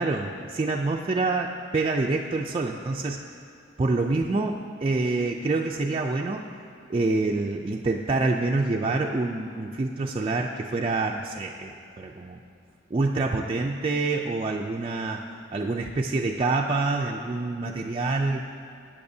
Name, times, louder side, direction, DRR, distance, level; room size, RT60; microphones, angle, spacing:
voice 1, 0.0-3.3 3.8-6.4 6.9-12.4 12.9-15.2 15.5-18.5, right 3 dB, 30° right, 0 dB, 0.3 m, -26 dB
15.5 x 8.7 x 2.7 m, 2.4 s
head